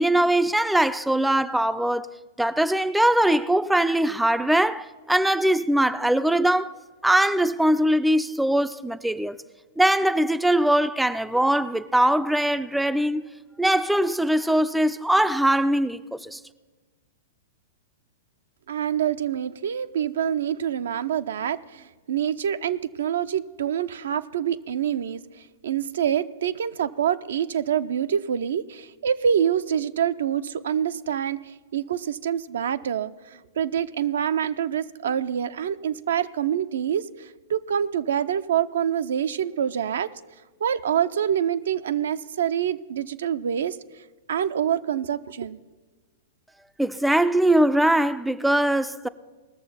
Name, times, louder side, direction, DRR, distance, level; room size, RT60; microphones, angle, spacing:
voice 1, 0.0-2.1 2.4-6.7 7.0-9.4 9.8-13.2 13.6-16.4 46.8-49.1, right 1 dB, 5° right, 0.4 m, -21 dB
voice 2, 18.7-40.1 40.6-43.8 44.3-45.6, right 9 dB, 70° right, 0.5 m, -26 dB
19.0 x 6.8 x 5.6 m
hypercardioid pair, 110°, 0 cm